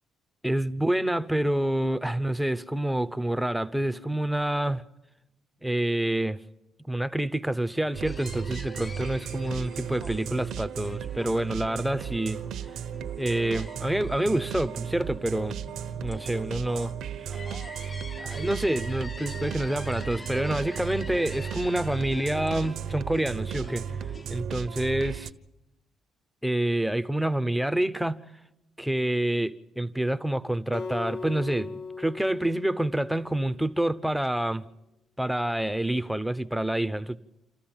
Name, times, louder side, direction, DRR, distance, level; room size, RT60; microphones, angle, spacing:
voice 1, 0.4-4.8 5.6-6.4 6.9-12.4 13.2-15.5 15.9-16.9 18.2-23.9 24.3-25.3 26.4-28.2 28.8-34.7 35.2-37.2, right 1 dB, ahead, 0.8 m, -27 dB
sound 1, 7.9-25.3, right 8 dB, 75° right, 1.1 m, -35 dB
sound 2, 8.0-24.4, left 3 dB, 25° left, 0.8 m, -46 dB
Acoustic guitar, 30.7-34.0, left 4 dB, 75° left, 2.5 m, -39 dB
28.0 x 14.0 x 8.9 m
cardioid pair, 115°, 0 cm